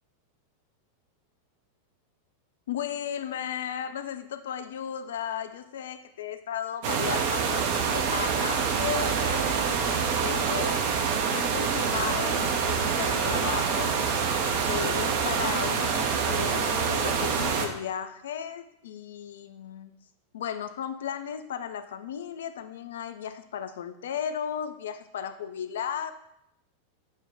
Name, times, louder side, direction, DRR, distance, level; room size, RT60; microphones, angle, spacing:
voice 1, 2.7-10.8 11.3-14.0 14.2-19.9 20.3-26.1, left 9 dB, 60° left, 10 dB, 0.3 m, -35 dB
sound 1, 6.8-17.7, right 6 dB, 50° right, 0.5 m, -26 dB
6.3 x 2.1 x 3.7 m, 0.78 s
figure-of-eight pair, 90°, 0 cm